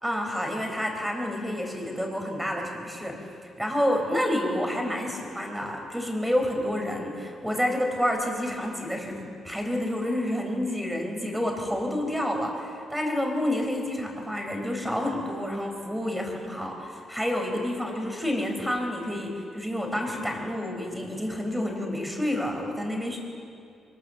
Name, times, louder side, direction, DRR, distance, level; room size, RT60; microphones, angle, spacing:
voice 1, 0.0-3.2 3.6-23.2, left 1 dB, 5° right, 2 dB, 4.7 m, -29 dB
24.0 x 22.5 x 7.1 m, 2.5 s
cardioid pair, 110°, 0 cm